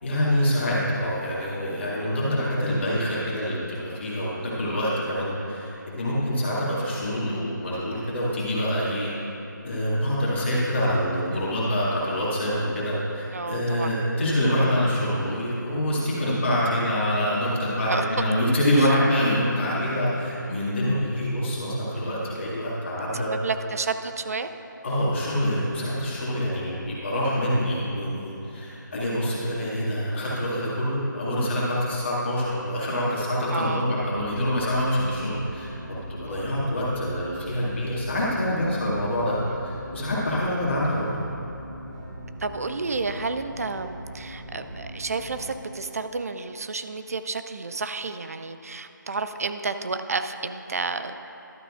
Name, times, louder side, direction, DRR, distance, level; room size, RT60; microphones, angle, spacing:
voice 1, 0.0-9.1 9.6-23.3 24.8-35.7 36.1-41.1, equal, 35° left, -7 dB, 2.1 m, -26 dB
voice 2, 13.3-13.9 16.2-16.4 17.9-18.0 23.1-24.5 33.5-33.9 36.3-36.5 42.4-51.1, right 4 dB, 50° right, 9 dB, 0.4 m, -31 dB
sound 1, 34.0-45.5, equal, 15° right, 1.0 m, -40 dB
12.0 x 8.7 x 2.5 m, 3.0 s
figure-of-eight pair, 160°, 11 cm